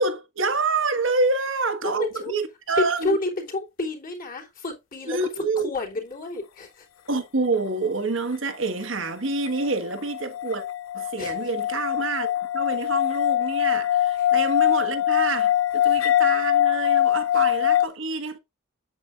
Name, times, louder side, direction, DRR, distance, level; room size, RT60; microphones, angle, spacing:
voice 1, 0.0-3.2 5.1-5.7 7.1-10.6 10.9-12.3 12.5-18.4, right 3 dB, 65° right, 1.5 m, -27 dB
voice 2, 1.8-2.3 3.0-6.9 11.2-11.5 13.4-13.5 14.1-14.3 15.8-16.0 17.3-17.4, left 2 dB, 45° left, 3.1 m, -31 dB
sound 1, 9.5-17.9, left 12 dB, 65° left, 0.4 m, -23 dB
8.3 x 7.8 x 2.5 m
head